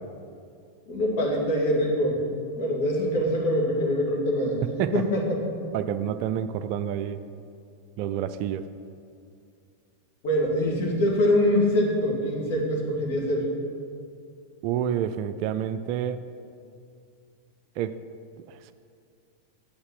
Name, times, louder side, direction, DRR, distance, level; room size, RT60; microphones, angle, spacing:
voice 1, 0.9-2.2 2.5-4.6 4.9-5.4 10.2-13.4, equal, 50° left, -2 dB, 2.3 m, -24 dB
voice 2, 5.7-7.2 8.0-8.7 14.6-16.2 17.8-18.0, right 9 dB, 45° right, 11 dB, 0.3 m, -28 dB
8.3 x 5.6 x 7.5 m, 2.3 s
figure-of-eight pair, 90°, 0 cm